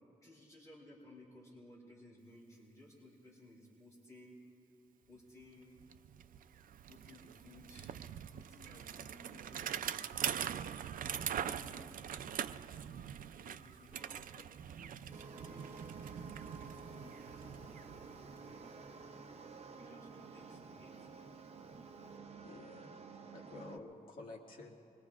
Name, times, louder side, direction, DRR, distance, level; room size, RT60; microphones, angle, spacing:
voice 1, 0.2-4.4 5.1-5.8 6.9-8.0 8.3-10.5 11.0-12.6 13.3-14.4 14.8-18.9 19.8-21.1, left 1 dB, 20° left, -5 dB, 3.8 m, -59 dB
Bicycle, 5.4-5.5 5.8-18.7, right 9 dB, 85° right, 0.4 m, -43 dB
sound 1, 15.1-23.8, right 4 dB, 50° right, 0.7 m, -52 dB
voice 2, 22.4-22.9 23.3-24.8, left 3 dB, 90° left, -1 dB, 1.9 m, -50 dB
25.5 x 22.0 x 2.4 m, 2.7 s
wide cardioid pair, 135°, 14 cm